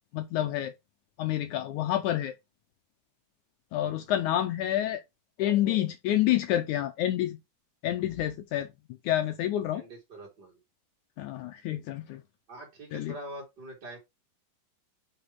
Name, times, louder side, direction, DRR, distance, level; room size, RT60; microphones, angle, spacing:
voice 1, 0.1-0.8 1.2-2.3 3.7-5.0 5.4-7.4 7.8-8.7 9.0-9.8 11.2-12.2 12.9-13.1, left 12 dB, 80° left, 1.8 m, -28 dB
voice 2, 9.7-10.6 12.5-14.0, right 1 dB, 30° right, 3.4 m, -44 dB
6.0 x 5.0 x 5.8 m
omnidirectional pair, 4.0 m